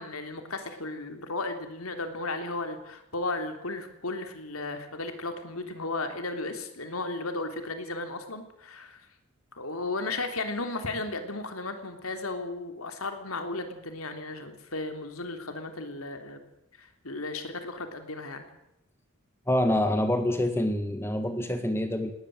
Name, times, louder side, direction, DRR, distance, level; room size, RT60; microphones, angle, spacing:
voice 1, 0.0-9.1 9.6-16.4 16.8-18.5, left 2 dB, 85° left, 7 dB, 3.4 m, -35 dB
voice 2, 19.5-22.1, left 1 dB, 10° left, 8 dB, 1.7 m, -26 dB
19.5 x 18.5 x 7.9 m, 0.88 s
head